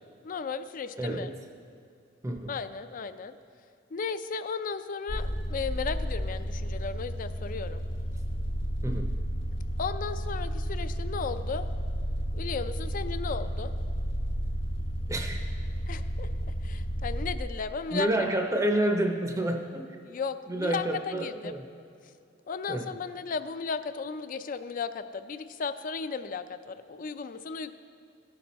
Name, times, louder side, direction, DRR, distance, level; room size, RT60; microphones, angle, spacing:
voice 1, 0.2-1.3 2.5-3.4 3.9-7.8 9.8-11.7 12.3-13.7 15.9-16.3 16.6-18.1 20.1-21.6 22.5-27.7, left 5 dB, 45° left, 11 dB, 0.4 m, -35 dB
voice 2, 1.0-1.3 2.2-2.6 8.8-9.2 15.1-15.4 17.9-20.0 20.5-21.6 22.7-22.9, right 1 dB, 15° right, 3 dB, 0.6 m, -29 dB
sound 1, 5.1-17.4, equal, 75° left, 1.0 m, -32 dB
15.0 x 5.9 x 4.1 m, 2.4 s
head